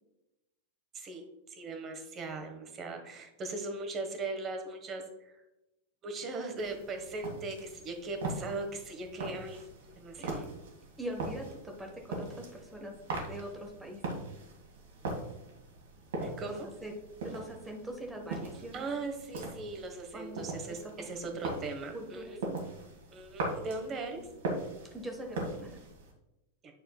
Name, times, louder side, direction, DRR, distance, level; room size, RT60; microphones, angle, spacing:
voice 1, 0.9-5.3 6.0-9.6 10.0-10.4 16.2-16.7 18.7-22.4 23.1-24.3, right 3 dB, 25° right, 5 dB, 1.2 m, -39 dB
sound 1, 6.6-26.1, right 2 dB, 60° right, 1.7 m, -41 dB
voice 2, 10.2-10.5 11.0-14.0 16.5-18.9 20.1-20.4 20.7-21.4 21.9-22.4 24.8-25.8, right 1 dB, 10° right, 3 dB, 1.0 m, -43 dB
9.6 x 6.3 x 2.3 m, 0.96 s
figure-of-eight pair, 90°, 0 cm